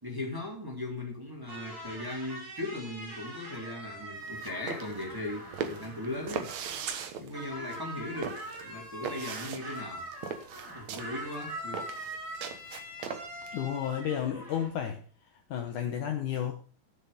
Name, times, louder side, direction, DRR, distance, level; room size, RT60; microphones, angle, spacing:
voice 1, 0.0-6.7 7.1-10.1 10.7-11.9, left 2 dB, 5° right, -2 dB, 3.1 m, -38 dB
sound 1, 1.5-7.1 7.3-14.7, right 1 dB, 80° right, 9.4 m, -43 dB
sound 2, 4.2-13.5, right 7 dB, 65° right, 1.9 m, -39 dB
voice 2, 13.5-15.0 15.5-16.5, left 9 dB, 65° left, 4 dB, 2.3 m, -32 dB
15.0 x 7.3 x 5.2 m, 0.40 s
omnidirectional pair, 4.5 m